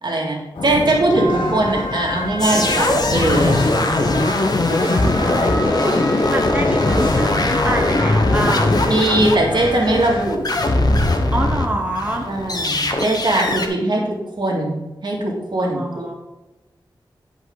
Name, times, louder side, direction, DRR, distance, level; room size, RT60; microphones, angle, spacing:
voice 1, 0.0-3.6 8.9-10.4 12.3-16.2, right 1 dB, 65° right, -2 dB, 2.2 m, -20 dB
Thunder, 0.5-13.6, left 2 dB, 90° left, 1.3 m, -29 dB
sound 1, 1.2-10.2, left 1 dB, 65° left, 2.2 m, -28 dB
sound 2, 2.4-11.7 11.9-13.7, left 2 dB, 50° left, 0.9 m, -20 dB
voice 2, 4.6-8.8 11.3-12.3 15.6-16.1, right 1 dB, 15° right, 0 dB, 1.0 m, -27 dB
10.5 x 5.2 x 3.9 m, 1.1 s
wide cardioid pair, 80°, 8 cm